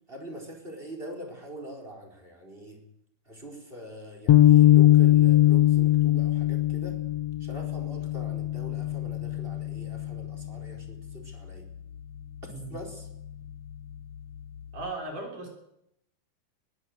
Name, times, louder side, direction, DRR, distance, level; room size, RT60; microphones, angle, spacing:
voice 1, 0.1-2.8 3.3-7.0 7.4-11.7 12.7-13.1, equal, 15° right, 4 dB, 4.4 m, -43 dB
sound 1, 4.3-10.7, left 14 dB, 80° left, 1.4 m, -21 dB
voice 2, 14.7-15.5, right 2 dB, 50° right, 1 dB, 7.0 m, -37 dB
22.0 x 15.5 x 8.0 m, 0.78 s
omnidirectional pair, 4.5 m